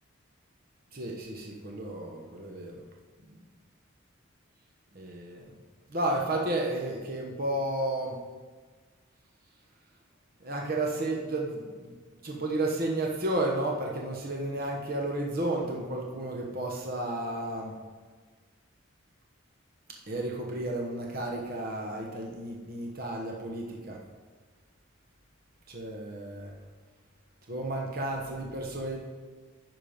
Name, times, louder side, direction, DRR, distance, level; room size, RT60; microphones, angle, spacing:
voice 1, 0.9-2.8 4.9-5.5 5.9-8.2 10.4-11.9 12.2-17.7 20.1-24.0 25.7-26.5 27.5-29.0, right 1 dB, 45° right, 0 dB, 1.1 m, -32 dB
10.5 x 5.9 x 5.1 m, 1.5 s
head